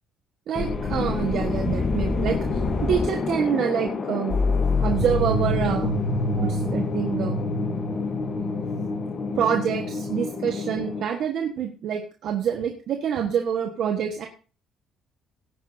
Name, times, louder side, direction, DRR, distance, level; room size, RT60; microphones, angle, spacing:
sound 1, 0.5-11.0, left 3 dB, 30° left, 1.2 m, -26 dB
voice 1, 0.5-2.4 2.8-4.4 4.8-6.0 6.3-7.4 9.3-14.3, right 8 dB, 60° right, 3 dB, 1.4 m, -26 dB
18.5 x 9.8 x 2.8 m, 0.36 s
cardioid pair, 150°, 0 cm